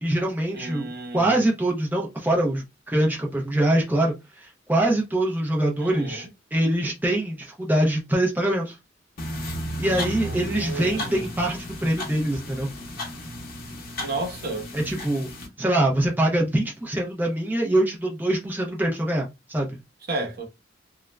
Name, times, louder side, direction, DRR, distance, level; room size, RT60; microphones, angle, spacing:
voice 1, 0.0-8.8 9.8-12.7 14.7-15.3 15.6-19.8, right 1 dB, 10° right, 0.5 m, -24 dB
voice 2, 0.5-1.3 5.8-6.3 10.2-11.3 14.0-14.7 20.1-20.4, right 2 dB, 55° right, 0.9 m, -32 dB
sound 1, 9.2-15.5, equal, 50° left, 0.9 m, -34 dB
2.4 x 2.1 x 3.1 m
head